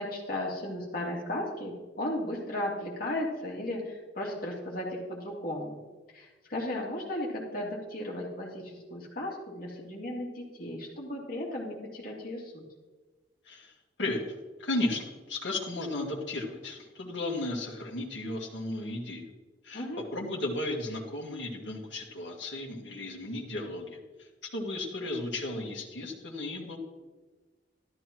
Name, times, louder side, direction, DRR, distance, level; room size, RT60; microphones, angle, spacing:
voice 1, 0.0-5.8 6.1-12.6 19.7-20.0, left 1 dB, 50° left, -2 dB, 2.6 m, -35 dB
voice 2, 14.6-19.2 19.6-19.8 20.1-24.0 24.5-26.8, left 2 dB, 70° left, -3 dB, 1.8 m, -34 dB
13.0 x 12.5 x 3.1 m, 1.2 s
head